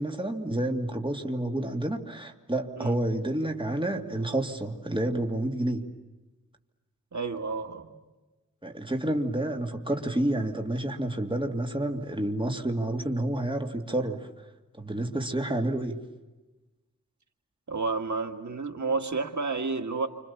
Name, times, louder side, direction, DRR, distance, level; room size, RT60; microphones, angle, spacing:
voice 1, 0.0-5.9 8.6-14.5 14.7-16.1, right 1 dB, 15° right, 3 dB, 2.8 m, -29 dB
voice 2, 7.1-8.0 17.7-20.1, right 4 dB, 80° right, 6 dB, 1.9 m, -30 dB
29.0 x 26.5 x 7.2 m, 1.1 s
wide cardioid pair, 70°, 29 cm